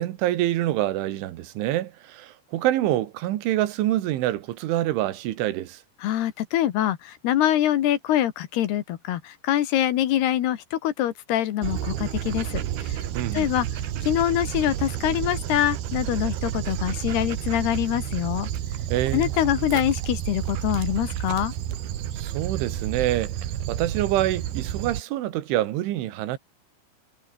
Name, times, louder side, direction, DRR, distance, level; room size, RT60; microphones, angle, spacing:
voice 1, 0.0-5.8 13.1-13.5 18.9-19.3 22.2-23.3 23.7-26.4, right 14 dB, 90° right, 4.0 m, -26 dB
voice 2, 6.0-13.0 13.3-13.7 14.0-18.5 19.1-21.5, left 12 dB, 70° left, 3.2 m, -24 dB
Dog, 11.6-25.0, right 11 dB, 65° right, 3.6 m, -30 dB
omnidirectional pair, 5.3 m